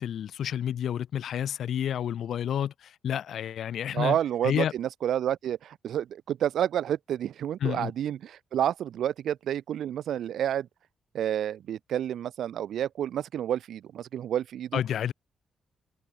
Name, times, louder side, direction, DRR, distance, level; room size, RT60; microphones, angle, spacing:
voice 1, 0.0-4.2 4.4-4.7 7.6-7.9 14.7-15.1, left 9 dB, 75° left, 1.1 m, -30 dB
voice 2, 3.9-10.7 11.1-14.8, right 10 dB, 75° right, 0.9 m, -29 dB
cardioid pair, 70°, 0 cm